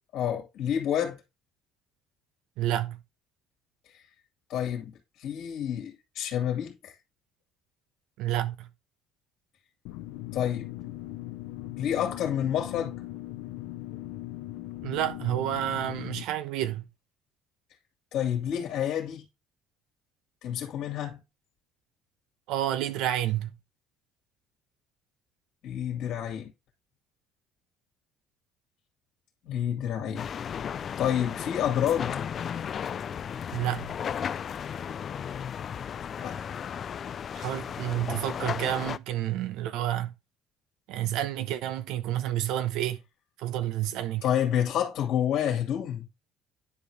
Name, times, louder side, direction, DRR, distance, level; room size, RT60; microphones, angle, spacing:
voice 1, 0.1-1.2 4.5-4.9 5.2-6.9 10.3-10.7 11.8-13.0 18.1-19.2 20.4-21.2 25.6-26.5 29.4-30.3 31.0-32.2 36.2-36.4 44.2-46.1, left 9 dB, 65° left, 2.3 m, -29 dB
voice 2, 2.6-3.0 8.2-8.7 14.8-16.8 22.5-23.5 33.5-33.9 37.3-40.1 40.9-43.0 43.4-44.2, right 12 dB, 75° right, 0.9 m, -29 dB
sound 1, 9.9-16.2, left 16 dB, 85° left, 0.7 m, -39 dB
sound 2, 30.2-39.0, left 8 dB, 40° left, 0.4 m, -35 dB
10.0 x 5.0 x 3.4 m
cardioid pair, 125°, 0 cm